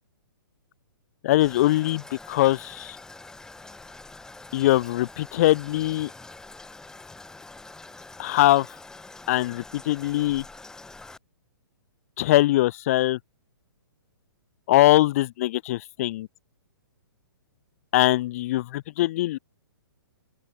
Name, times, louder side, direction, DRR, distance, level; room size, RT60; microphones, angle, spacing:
voice 1, 1.2-2.0 2.3-3.0 4.5-6.1 8.2-8.7 9.3-10.4 12.2-13.2 14.7-16.3 17.9-19.4, left 16 dB, 40° left, 1.4 m, -22 dB
Toilet flush, 1.4-11.2, left 3 dB, 5° left, 2.4 m, -45 dB
open air
figure-of-eight pair, 120°, 12 cm